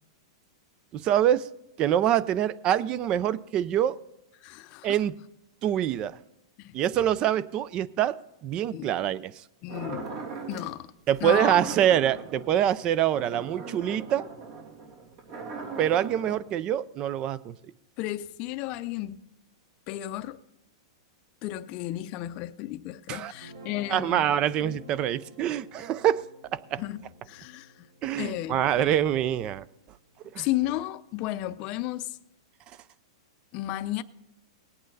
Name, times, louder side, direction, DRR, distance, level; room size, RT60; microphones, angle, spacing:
voice 1, 0.9-1.5 1.8-4.0 4.8-5.1 5.6-6.2 6.7-8.1 8.4-9.3 11.1-14.2 15.8-17.6 23.1-23.3 23.9-26.2 26.5-26.8 28.0-29.6 30.3-30.5, right 10 dB, 30° right, 0.4 m, -25 dB
voice 2, 4.4-5.0 6.6-6.8 8.7-8.9 9.6-10.1 10.5-10.9 11.2-11.7 18.0-19.2 19.9-20.4 21.4-24.3 24.6-24.8 26.8-27.9 28.2-28.9 30.4-32.2 33.5-34.0, left 15 dB, 35° left, 0.5 m, -33 dB
sound 1, 9.7-10.7 11.1-16.4, right 3 dB, 55° right, 3.1 m, -39 dB
Guitar, 23.3-29.6, equal, 90° right, 5.8 m, -51 dB
19.0 x 8.7 x 4.0 m
hypercardioid pair, 145°, 3 cm